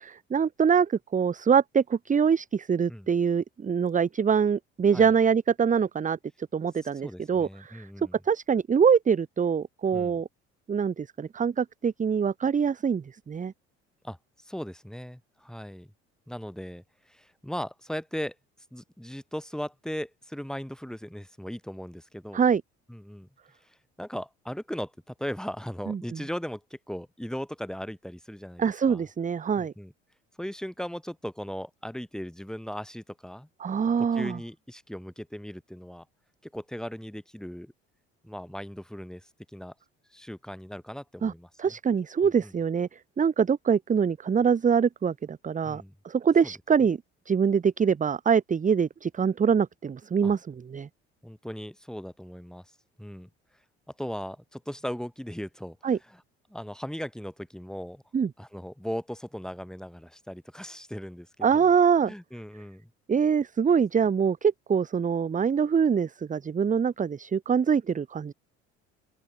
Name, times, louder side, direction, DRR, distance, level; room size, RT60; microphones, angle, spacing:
voice 1, 0.0-6.2 6.5-7.9 8.3-10.3 10.7-13.5 22.3-22.6 25.9-26.0 28.6-29.7 33.6-34.4 41.2-41.3 41.6-47.0 47.3-50.9 55.8-56.0 58.1-58.3 61.4-62.1 63.1-68.3, right 6 dB, 25° right, 0.9 m, -24 dB
voice 2, 7.0-8.2 9.9-10.2 14.0-15.9 16.3-18.4 18.7-22.4 22.9-23.3 23.6-29.1 29.6-29.9 30.4-33.5 34.0-36.1 36.4-37.7 38.2-39.7 40.1-41.7 42.2-42.5 45.6-46.0 46.4-46.5 50.2-50.3 51.2-52.7 53.0-53.3 54.0-56.2 56.5-58.0 58.4-61.7 62.0-62.9, equal, ahead, 3.9 m, -38 dB
open air
hypercardioid pair, 60°, 34 cm